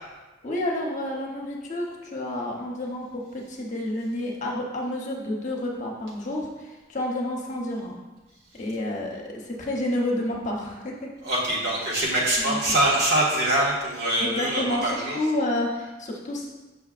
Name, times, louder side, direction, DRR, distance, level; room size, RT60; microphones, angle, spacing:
voice 1, 0.4-8.0 8.5-11.1 12.4-12.6 14.2-16.5, left 1 dB, 40° left, -2 dB, 1.0 m, -30 dB
voice 2, 11.2-15.2, right 1 dB, 60° right, -5 dB, 1.7 m, -24 dB
7.0 x 5.5 x 2.5 m, 1.2 s
head